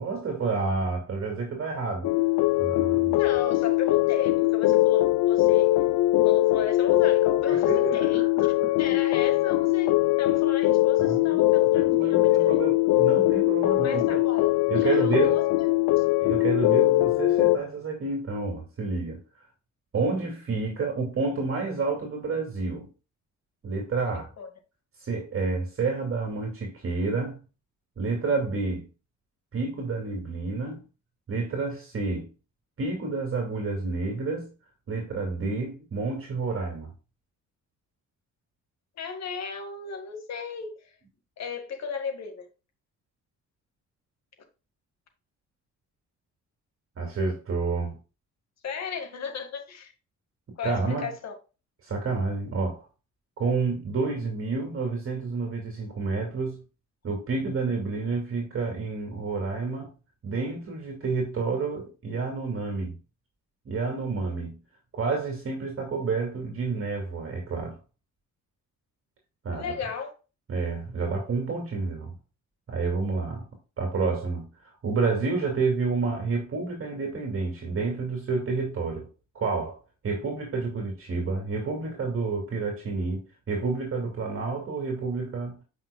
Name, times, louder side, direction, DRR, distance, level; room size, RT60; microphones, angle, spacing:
voice 1, 0.0-2.1 2.6-3.3 7.5-8.7 11.0-14.3 14.7-15.4 16.2-19.2 19.9-22.9 23.6-24.3 25.0-27.4 28.0-28.9 29.5-30.8 31.3-32.3 32.8-34.5 34.9-36.9 47.0-48.0 50.6-51.1 51.9-52.9 53.4-56.6 57.0-59.9 60.2-62.9 63.7-64.6 64.9-67.8 69.4-69.7 70.5-72.1 72.7-73.4 73.8-79.1 79.3-79.8 80.0-85.6, right 4 dB, 45° right, 2.5 m, -29 dB
sound 1, 2.0-17.6, left 18 dB, 80° left, 0.5 m, -22 dB
voice 2, 3.1-5.8 6.2-8.2 8.8-12.7 13.8-15.9 24.0-24.5 39.0-40.8 41.4-42.5 48.6-49.9 50.6-51.3 69.6-70.1, left 5 dB, 60° left, 1.9 m, -35 dB
8.0 x 5.7 x 2.3 m
cardioid pair, 90°, 30 cm